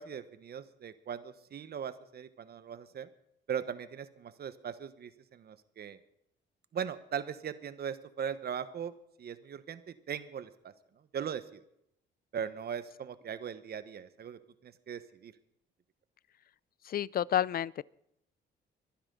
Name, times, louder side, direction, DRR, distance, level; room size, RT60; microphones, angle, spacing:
voice 1, 0.0-3.1 3.5-6.0 6.7-8.9 9.2-10.7 11.1-11.6 12.3-15.3, right 8 dB, 55° right, 1.2 m, -39 dB
voice 2, 16.9-17.8, left 10 dB, 50° left, 0.5 m, -30 dB
24.0 x 10.0 x 3.9 m
cardioid pair, 90°, 20 cm